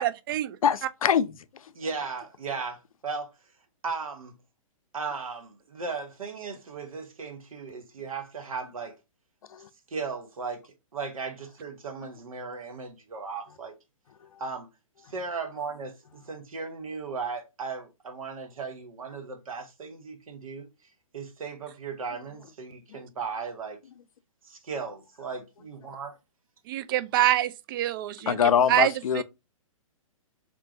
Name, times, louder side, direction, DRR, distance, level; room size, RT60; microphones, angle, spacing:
voice 1, 0.0-0.6 26.7-28.4 28.7-29.2, right 13 dB, 40° right, 0.4 m, -26 dB
voice 2, 0.6-1.4 9.5-9.6 22.9-23.0 28.3-29.2, left 8 dB, 80° left, 0.4 m, -23 dB
voice 3, 1.7-3.3 3.8-4.3 4.9-9.0 9.9-13.7 14.4-14.7 15.1-20.7 21.1-23.8 24.5-26.2, right 4 dB, 80° right, 1.1 m, -36 dB
3.7 x 2.4 x 3.7 m
hypercardioid pair, 135°, 18 cm